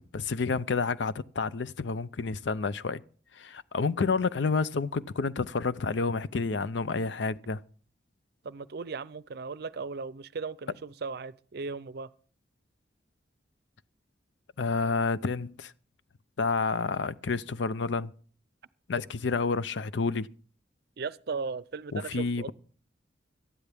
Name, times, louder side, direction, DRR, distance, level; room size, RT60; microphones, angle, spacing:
voice 1, 0.1-3.0 3.4-7.6 14.6-15.7 16.4-18.1 18.9-20.3 21.9-22.5, left 4 dB, 80° left, 0.5 m, -29 dB
voice 2, 8.4-12.1 21.0-22.5, right 4 dB, 60° right, 0.5 m, -37 dB
18.0 x 12.5 x 3.5 m
head